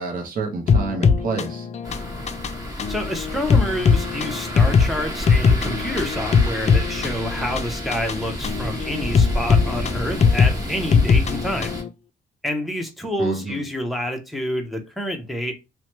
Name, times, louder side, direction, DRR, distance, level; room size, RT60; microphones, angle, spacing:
voice 1, 0.0-1.7 13.2-13.6, right 3 dB, 45° right, 0.7 m, -28 dB
sound 1, 0.7-11.9, left 5 dB, 35° left, 0.4 m, -20 dB
sound 2, 1.8-11.8, equal, 15° right, 1.3 m, -31 dB
voice 2, 2.9-11.8 12.4-15.5, left 1 dB, ahead, 0.6 m, -28 dB
3.0 x 2.2 x 2.8 m
cardioid pair, 90°, 20 cm